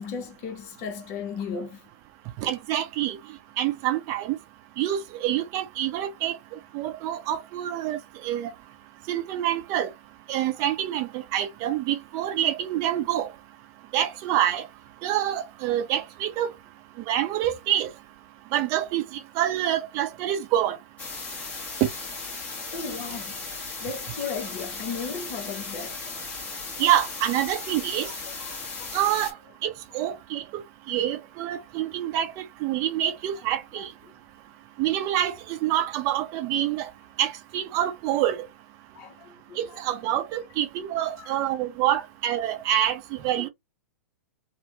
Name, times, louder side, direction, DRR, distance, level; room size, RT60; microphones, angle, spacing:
voice 1, 0.0-1.9 22.7-23.5 23.8-26.4 28.0-28.9 30.0-30.2 33.8-34.1 38.9-39.8 40.0-40.2 41.2-41.4 43.3-43.5, left 5 dB, 40° left, 0.9 m, -36 dB
voice 2, 2.4-3.2 3.6-4.4 4.8-6.4 6.7-8.5 9.1-9.9 10.3-13.3 13.9-14.7 15.0-16.5 17.1-17.9 18.5-20.8 21.8-21.9 26.8-28.1 28.9-29.3 29.6-30.6 30.9-33.9 34.8-36.9 37.2-38.4 39.6-43.5, right 12 dB, 35° right, 0.7 m, -26 dB
sound 1, 21.0-29.3, left 4 dB, 15° left, 1.2 m, -36 dB
3.4 x 2.2 x 2.9 m
figure-of-eight pair, 105°, 8 cm